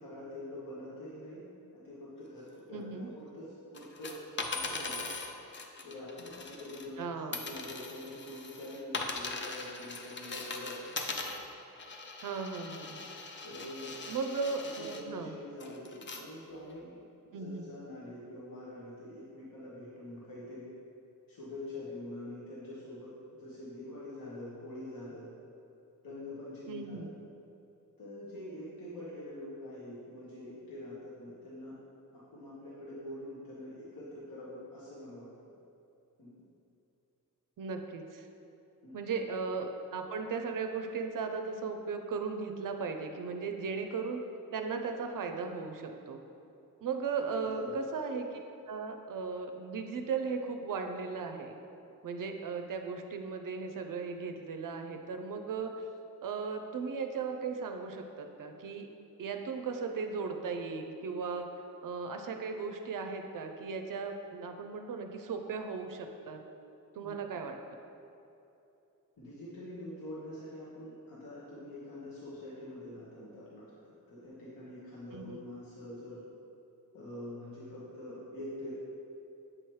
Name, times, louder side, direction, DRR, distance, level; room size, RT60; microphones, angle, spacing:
voice 1, 0.0-1.4 1.7-5.1 5.8-10.9 13.4-14.2 14.6-16.9 17.3-20.7 21.3-25.3 26.0-27.1 28.0-31.8 32.1-35.3 36.2-36.3 38.8-38.9 47.4-47.8 67.0-67.1 69.2-73.7 74.1-76.2 76.9-78.7, left 1 dB, 70° left, -8 dB, 1.2 m, -45 dB
voice 2, 2.7-3.1 7.0-7.4 12.2-13.0 14.1-15.3 17.3-17.7 26.7-27.1 37.6-38.3 38.9-44.2 44.5-46.2 46.8-48.4 48.7-51.5 52.0-55.7 56.2-58.9 59.2-61.5 61.8-66.4 67.0-67.5 75.1-75.4, right 5 dB, 65° right, 5 dB, 0.5 m, -37 dB
sound 1, 3.7-7.0 7.3-15.0 15.6-16.2 16.8-16.9, left 3 dB, 35° left, 0.4 m, -40 dB
7.5 x 4.5 x 3.1 m, 2.9 s
wide cardioid pair, 135°, 35 cm